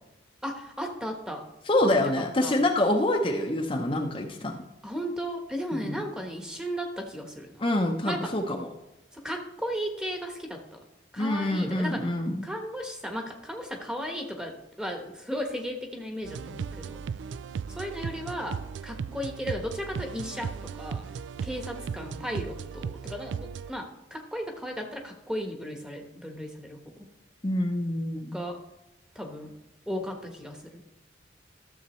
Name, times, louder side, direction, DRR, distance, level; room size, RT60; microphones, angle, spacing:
voice 1, 0.4-1.5 1.9-2.6 4.8-7.6 8.0-8.3 9.1-10.8 11.1-12.1 12.4-17.0 17.7-21.0 21.4-26.9 28.3-28.6 29.1-29.5 29.9-30.8, equal, 5° right, 3 dB, 1.1 m, -35 dB
voice 2, 1.7-4.5 5.7-6.0 7.6-8.7 11.2-12.4 27.4-28.3, left 1 dB, 30° left, 1 dB, 0.7 m, -26 dB
sound 1, 16.2-23.7, right 6 dB, 80° right, 0.3 m, -36 dB
12.5 x 7.2 x 3.1 m, 0.96 s
head